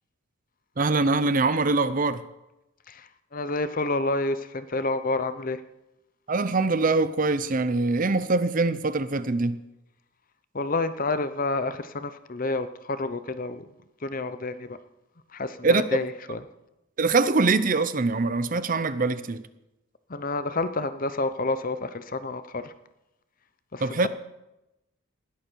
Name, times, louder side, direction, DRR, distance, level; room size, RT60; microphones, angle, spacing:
voice 1, 0.8-2.2 6.3-9.6 15.6-16.0 17.0-19.4 23.8-24.1, right 3 dB, 40° right, 0.6 m, -23 dB
voice 2, 2.9-5.6 10.5-13.6 14.0-14.8 15.3-16.4 20.1-22.7 23.7-24.1, left 2 dB, 40° left, 0.8 m, -29 dB
20.0 x 12.0 x 4.6 m
head